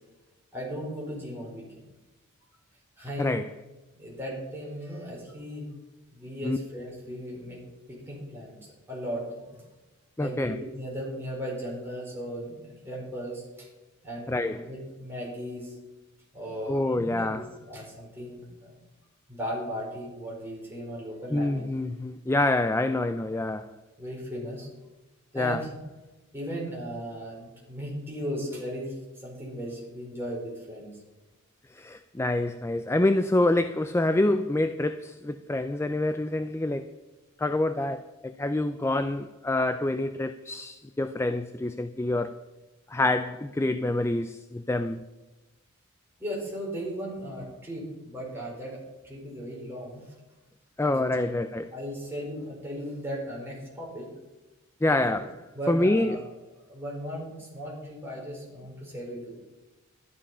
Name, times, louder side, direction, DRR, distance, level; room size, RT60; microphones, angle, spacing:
voice 1, 0.5-1.8 3.0-3.3 4.0-5.7 6.1-7.6 7.9-8.5 8.9-9.6 10.2-13.7 14.0-15.7 16.3-18.8 19.3-21.7 24.0-24.7 25.3-25.7 26.3-30.9 46.2-48.8 49.0-50.1 50.9-51.4 51.7-54.1 55.0-55.1 55.5-56.2 56.7-59.4, equal, 10° right, 4.9 m, -37 dB
voice 2, 3.2-3.5 6.4-6.6 10.2-10.6 14.3-14.6 16.7-17.4 21.3-23.7 25.3-25.6 31.7-37.0 37.4-42.4 42.9-45.1 50.8-51.7 54.8-55.3 55.7-56.3, left 2 dB, 10° left, 0.4 m, -27 dB
12.0 x 11.0 x 5.6 m
head